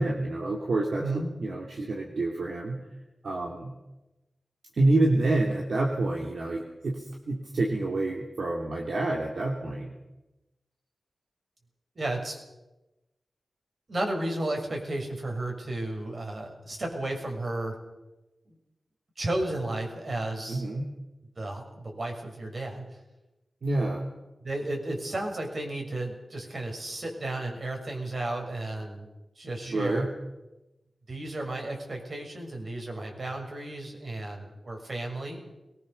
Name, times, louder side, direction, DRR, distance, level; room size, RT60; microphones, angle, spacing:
voice 1, 0.0-2.8 3.2-3.7 4.7-10.0 20.5-20.9 23.6-24.0 29.7-30.1, right 2 dB, 75° right, 0 dB, 3.0 m, -28 dB
voice 2, 1.0-1.3 11.9-12.4 13.9-17.8 18.5-18.6 19.2-20.7 21.4-22.8 24.4-29.1 29.4-30.1 31.1-35.4, right 2 dB, 55° right, 2 dB, 6.5 m, -33 dB
22.5 x 20.5 x 6.9 m, 1.0 s
cardioid pair, 60°, 0 cm